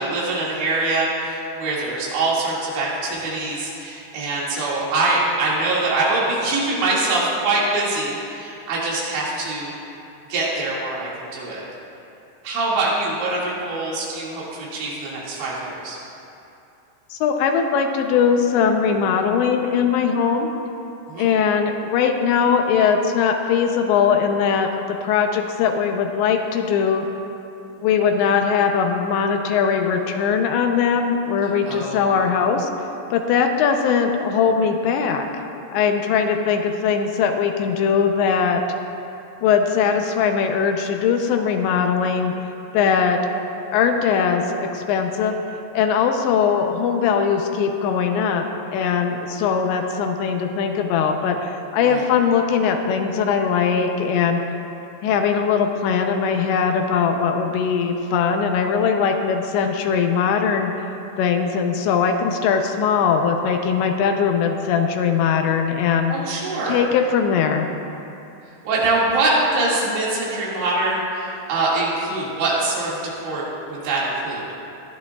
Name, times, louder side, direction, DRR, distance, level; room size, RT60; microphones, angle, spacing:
voice 1, 0.0-9.7 10.3-11.6 12.4-16.0 21.1-21.3 31.7-32.0 51.8-52.0 66.1-66.9 68.6-74.4, right 2 dB, 70° right, -6 dB, 4.4 m, -24 dB
voice 2, 17.1-20.5 21.2-27.0 27.8-32.7 33.1-35.3 35.7-38.6 39.4-42.3 42.7-43.2 43.7-45.4 45.7-48.4 48.7-54.4 55.0-60.7 61.2-66.1 66.7-67.7, left 6 dB, 80° left, 4 dB, 2.8 m, -20 dB
19.0 x 11.5 x 2.4 m, 2.8 s
omnidirectional pair, 5.4 m